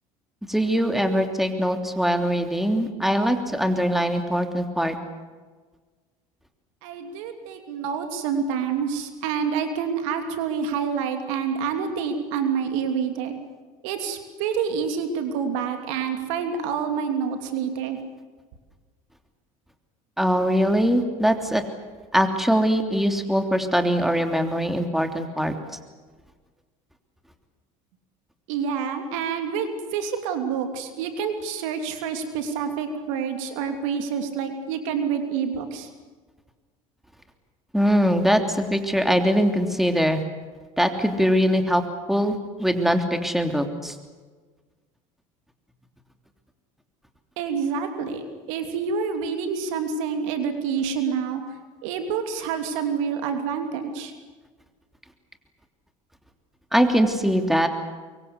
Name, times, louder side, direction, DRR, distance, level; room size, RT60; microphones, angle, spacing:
voice 1, 0.5-5.0 20.2-21.6 22.1-25.5 37.7-40.2 40.8-41.8 42.1-43.9 56.7-57.7, equal, ahead, 6 dB, 3.2 m, -22 dB
voice 2, 6.8-13.4 13.8-18.0 28.5-35.9 47.4-51.4 51.8-54.1, right 6 dB, 75° right, 6 dB, 2.9 m, -27 dB
24.0 x 23.5 x 8.2 m, 1.4 s
hypercardioid pair, 70°, 17 cm